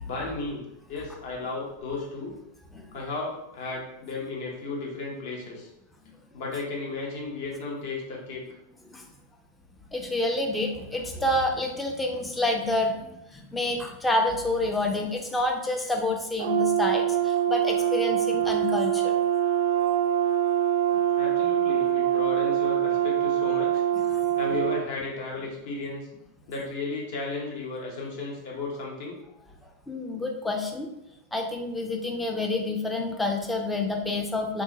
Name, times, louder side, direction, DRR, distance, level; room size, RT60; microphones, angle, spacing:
voice 1, 0.0-0.6 0.9-2.3 2.9-5.7 6.3-8.4 21.2-23.8 24.4-26.1 26.5-29.2, left 3 dB, 50° left, -2 dB, 1.0 m, -34 dB
voice 2, 9.9-19.1 24.1-24.3 29.9-30.9 31.3-34.6, left 2 dB, 10° left, 2 dB, 0.5 m, -28 dB
Brass instrument, 16.4-24.8, right 10 dB, 55° right, 0.3 m, -24 dB
3.5 x 2.7 x 2.7 m, 0.85 s
figure-of-eight pair, 90°, 0 cm